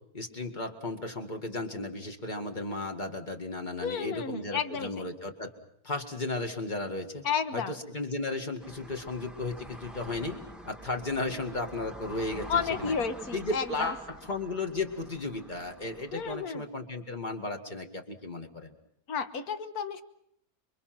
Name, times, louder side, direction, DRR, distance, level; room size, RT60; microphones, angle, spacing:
voice 1, 0.1-5.5 5.8-7.2 7.5-10.4 10.7-12.9 13.3-18.7, left 2 dB, 30° left, 4 dB, 2.2 m, -35 dB
voice 2, 3.8-5.0 7.2-7.7 12.5-13.9 16.1-16.6 19.1-20.0, left 6 dB, 70° left, 10 dB, 1.7 m, -32 dB
sound 1, 8.6-16.5, equal, ahead, 1.3 m, -47 dB
28.5 x 23.5 x 6.1 m, 0.72 s
omnidirectional pair, 1.6 m